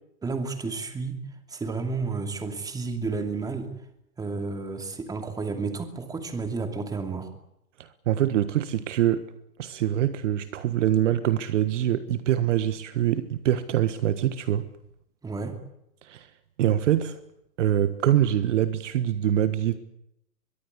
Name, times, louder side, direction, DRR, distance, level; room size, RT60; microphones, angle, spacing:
voice 1, 0.2-1.2 1.5-3.7 4.2-7.3 15.2-15.6, right 4 dB, 5° right, 2.6 m, -31 dB
voice 2, 8.1-9.3 9.6-14.6 16.1-16.3 16.6-17.1 17.6-19.8, right 11 dB, 45° right, 1.6 m, -24 dB
23.0 x 22.5 x 8.2 m
hypercardioid pair, 140°, 49 cm